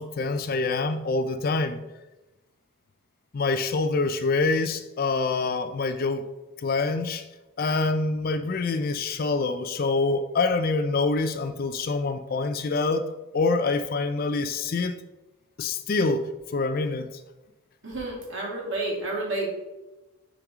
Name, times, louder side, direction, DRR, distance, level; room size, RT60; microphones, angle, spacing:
voice 1, 0.0-1.8 3.3-6.2 6.6-7.2 7.6-13.1 13.3-15.0 15.6-17.1, left 3 dB, 40° left, 9 dB, 0.4 m, -26 dB
voice 2, 17.8-19.5, right 2 dB, 55° right, -3 dB, 2.2 m, -30 dB
6.1 x 5.1 x 3.6 m, 1.0 s
head